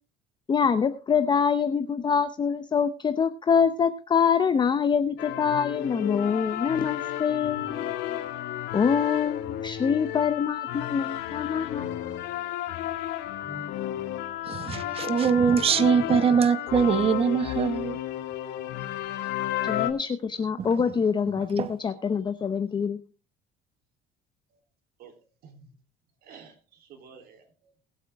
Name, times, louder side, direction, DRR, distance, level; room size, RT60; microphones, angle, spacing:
voice 1, 0.5-7.9 8.7-11.9 19.6-23.0, left 6 dB, 25° left, 0.7 m, -25 dB
sound 1, 5.2-19.9, left 12 dB, 75° left, 2.0 m, -32 dB
voice 2, 14.5-18.0 21.5-21.7, right 6 dB, 35° right, 1.0 m, -23 dB
voice 3, 25.0-25.7 26.2-27.9, right 6 dB, 60° right, 3.2 m, -51 dB
21.0 x 8.0 x 3.5 m
cardioid pair, 140°, 18 cm